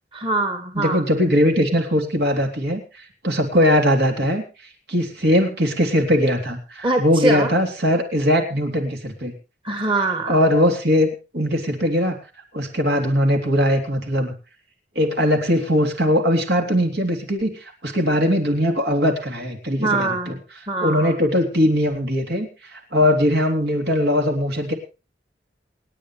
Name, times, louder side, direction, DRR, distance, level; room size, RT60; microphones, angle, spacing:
voice 1, 0.1-1.0 6.8-7.5 9.6-10.4 19.8-20.4 20.7-21.2, right 2 dB, 30° right, 5 dB, 2.1 m, -23 dB
voice 2, 0.8-2.8 3.2-4.4 4.9-9.3 10.3-11.1 11.3-12.2 12.5-14.3 15.0-17.6 17.8-20.4 20.8-24.7, equal, 70° right, 3 dB, 3.6 m, -20 dB
28.0 x 9.7 x 3.2 m, 0.33 s
head